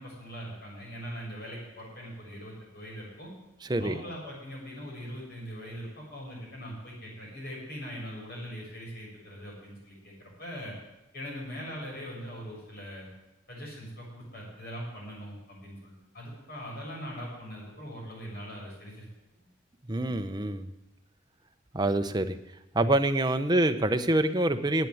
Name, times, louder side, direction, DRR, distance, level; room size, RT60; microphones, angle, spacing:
voice 1, 0.0-3.3 3.8-10.7 11.1-13.1 13.5-19.1 19.4-19.5, equal, 55° left, -3 dB, 6.8 m, -41 dB
voice 2, 19.9-20.7 21.7-22.4 22.7-24.9, right 1 dB, 20° right, 8 dB, 0.7 m, -26 dB
11.0 x 8.4 x 9.3 m, 0.95 s
head